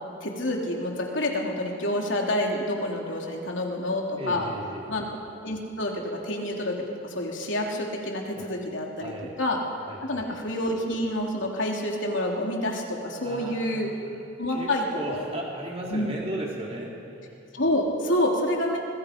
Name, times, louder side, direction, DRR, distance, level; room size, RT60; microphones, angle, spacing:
voice 1, 0.2-4.5 4.9-5.2 5.4-6.8 7.1-9.1 9.4-9.6 10.0-13.9 14.4-15.3 15.9-16.1 17.5-18.8, left 1 dB, 75° left, 0 dB, 3.2 m, -28 dB
voice 2, 4.1-4.9 8.4-8.5 9.0-9.4 9.9-10.3 13.2-14.1 14.5-17.0, right 1 dB, 30° right, -3 dB, 3.9 m, -36 dB
25.5 x 22.5 x 5.3 m, 2.6 s
head